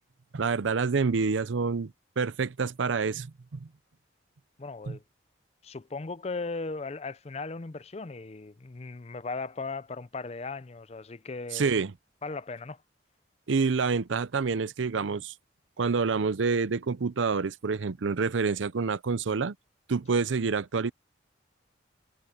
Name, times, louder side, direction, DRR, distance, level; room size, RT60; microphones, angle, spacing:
voice 1, 0.3-1.9 2.2-3.7 4.9-5.0 11.5-11.9 13.5-15.3 15.8-19.5 19.9-20.9, right 4 dB, 85° right, 0.6 m, -27 dB
voice 2, 4.6-5.0 5.6-11.7 12.2-12.8 20.1-20.2, left 3 dB, 35° left, 0.5 m, -37 dB
head